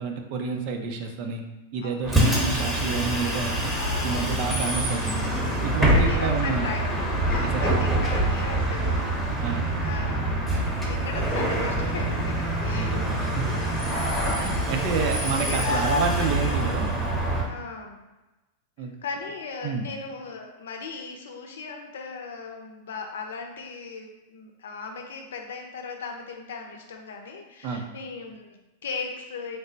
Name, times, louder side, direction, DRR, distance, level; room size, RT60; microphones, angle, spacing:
voice 1, 0.0-1.4 1.7-3.6 4.0-5.3 5.6-6.7 7.5-7.8 9.4-9.7 12.7-13.5 14.4-16.9 18.8-18.9 19.6-19.9 27.6-27.9, right 5 dB, 55° right, 4 dB, 0.5 m, -29 dB
voice 2, 1.8-2.3 3.7-4.1 5.8-6.9 7.3-9.2 9.8-10.4 10.8-13.3 13.8-14.7 15.0-16.5 17.5-18.0 18.8-29.6, left 4 dB, 80° left, 3 dB, 0.6 m, -38 dB
Bus, 2.0-17.5, right 1 dB, 5° right, 0.8 m, -25 dB
3.3 x 2.1 x 3.9 m, 1.1 s
hypercardioid pair, 120°, 0 cm